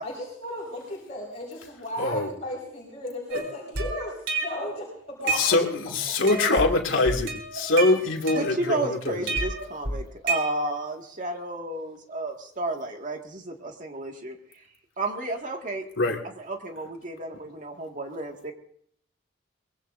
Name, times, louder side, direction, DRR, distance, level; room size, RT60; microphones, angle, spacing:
voice 1, 0.0-5.6, left 1 dB, 35° left, -5 dB, 5.1 m, -35 dB
voice 2, 2.0-2.3 5.3-9.2 16.0-16.2, left 2 dB, 80° left, 0 dB, 2.5 m, -23 dB
sound 1, 3.3-4.7 5.1-5.9 6.3-6.7 7.1-8.8 9.3-10.9, right 3 dB, 60° right, 4.0 m, -30 dB
voice 3, 8.4-14.4 15.0-15.8 16.4-18.5, right 2 dB, 40° right, 2 dB, 2.1 m, -32 dB
24.0 x 22.0 x 2.7 m, 0.66 s
head